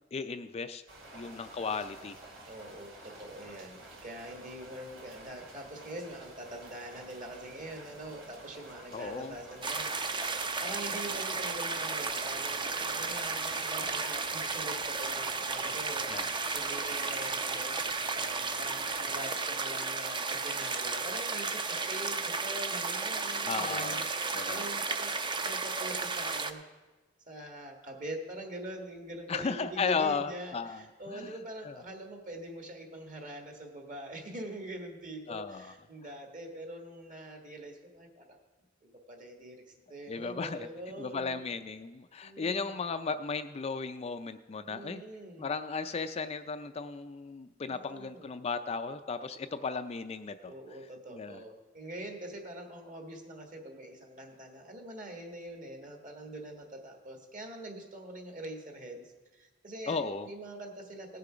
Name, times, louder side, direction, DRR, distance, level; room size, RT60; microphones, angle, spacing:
voice 1, 0.1-0.8 1.1-2.2 8.9-9.4 13.8-13.9 16.1-16.3 23.4-24.0 24.3-24.6 29.3-31.7 35.3-35.7 40.1-40.7 41.0-45.0 45.4-50.5 51.1-51.4 59.9-60.3, left 4 dB, 30° left, 9 dB, 0.4 m, -35 dB
sound 1, 0.9-19.3, right 2 dB, 75° right, 2.4 m, -51 dB
voice 2, 2.5-17.8 18.1-25.1 25.4-26.6 27.3-38.4 38.8-41.4 42.2-42.7 44.7-45.5 47.6-48.3 50.4-61.2, right 1 dB, 40° right, 3 dB, 1.6 m, -44 dB
sound 2, 9.6-26.5, right 4 dB, 25° right, 0.5 m, -33 dB
17.5 x 6.8 x 5.0 m, 1.2 s
head